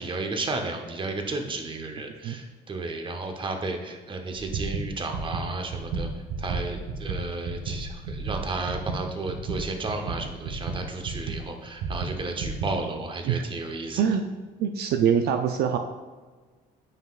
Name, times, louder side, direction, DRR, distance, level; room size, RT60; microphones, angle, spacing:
voice 1, 0.0-6.1 6.4-14.0, right 3 dB, 30° right, 5 dB, 0.9 m, -33 dB
sound 1, 4.3-11.4 11.8-12.7, right 4 dB, 90° right, 1.5 m, -32 dB
voice 2, 14.6-15.8, right 8 dB, 70° right, 6 dB, 0.5 m, -24 dB
9.0 x 5.7 x 2.4 m, 1.4 s
cardioid pair, 110°, 17 cm